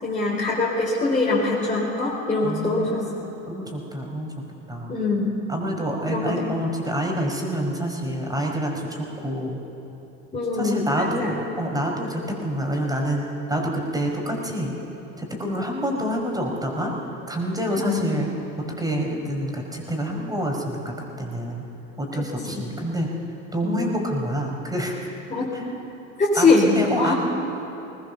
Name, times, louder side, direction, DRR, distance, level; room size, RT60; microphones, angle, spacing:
voice 1, 0.0-3.0 4.9-5.3 6.1-6.5 10.3-11.5 17.8-18.0 22.5-22.6 23.6-23.8 25.3-25.6 26.2-27.1, left 3 dB, 20° left, -6 dB, 4.7 m, -23 dB
voice 2, 2.4-2.9 3.5-4.3 4.7-5.0 5.5-9.6 10.5-13.2 13.5-14.7 15.2-16.9 17.3-18.3 18.8-21.6 22.0-23.1 23.5-25.1 25.5-25.6 26.3-26.5 26.7-27.1, equal, 10° right, 0 dB, 5.3 m, -27 dB
21.5 x 20.0 x 6.9 m, 2.9 s
figure-of-eight pair, 70°, 40 cm